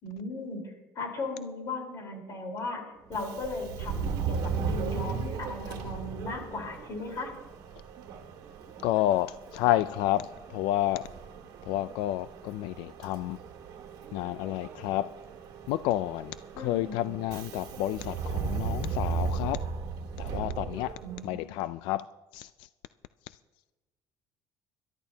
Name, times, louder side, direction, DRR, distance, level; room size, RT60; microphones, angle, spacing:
voice 1, 0.0-2.8 3.1-7.3 16.5-17.2 21.0-21.5, left 2 dB, 40° left, 1 dB, 4.1 m, -37 dB
Subway metro underground, 3.0-21.4, right 5 dB, 55° right, 1.9 m, -36 dB
voice 2, 8.8-11.1 11.7-13.4 14.1-15.1 15.7-19.6 20.2-20.9 21.2-22.1 22.3-22.7 23.3-23.4, left 14 dB, 90° left, 14 dB, 0.4 m, -30 dB
22.5 x 12.5 x 2.8 m, 1.2 s
cardioid pair, 180°, 8 cm